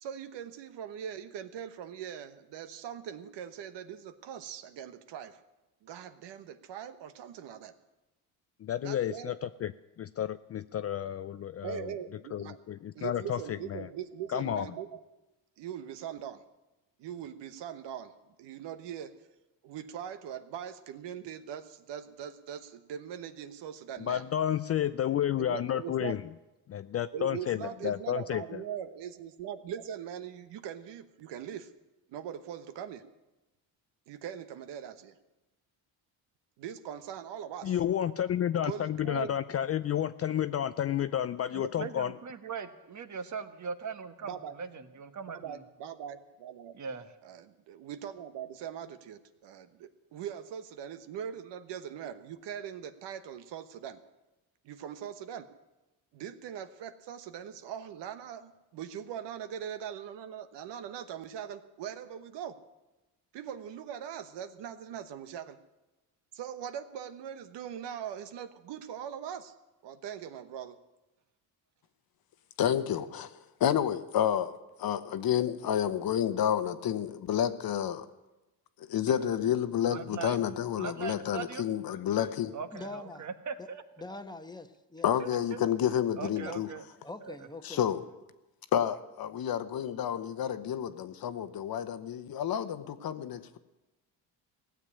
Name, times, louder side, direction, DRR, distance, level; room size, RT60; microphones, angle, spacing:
voice 1, 0.0-5.4 5.8-7.7 8.8-9.3 11.6-12.6 12.9-15.0 15.6-16.4 17.0-18.1 18.4-19.1 19.6-24.3 25.4-26.2 27.1-31.7 32.1-33.0 34.1-35.1 36.6-37.8 38.6-39.3 44.2-44.6 45.3-46.7 47.2-54.0 54.6-55.5 56.1-62.6 63.3-65.6 66.3-69.5 69.8-70.8, right 9 dB, 70° right, 1.2 m, -41 dB
voice 2, 8.6-9.7 10.0-11.9 12.3-13.9 14.3-14.7 24.0-26.2 26.7-28.6 37.6-42.2, left 10 dB, 35° left, 0.4 m, -31 dB
voice 3, 41.5-45.6 46.7-47.1 79.1-79.2 79.8-80.4 80.8-81.7 82.5-83.8 85.2-85.6 86.2-86.8 87.2-87.5, right 6 dB, 40° right, 1.2 m, -40 dB
voice 4, 72.6-78.1 78.8-82.5 85.0-86.7 87.6-88.1 88.7-93.6, left 9 dB, 55° left, 1.1 m, -30 dB
voice 5, 82.7-83.3 83.6-83.7 84.0-85.1 86.4-86.5 87.0-87.8, left 2 dB, 10° left, 1.0 m, -43 dB
16.5 x 7.4 x 9.9 m
cardioid pair, 90°, 43 cm